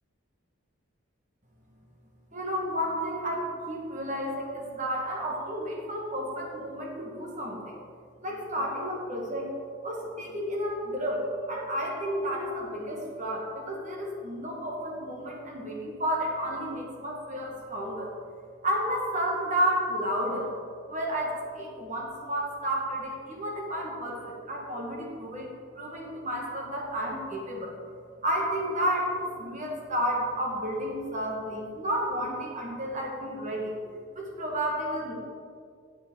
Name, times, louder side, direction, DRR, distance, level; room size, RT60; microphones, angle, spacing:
voice 1, 2.3-7.8 8.2-9.5 9.8-18.1 18.6-20.5 20.9-25.5 25.7-27.7 28.2-33.7 34.1-35.1, equal, 35° right, -2 dB, 1.5 m, -31 dB
9.9 x 7.5 x 3.8 m, 2.3 s
head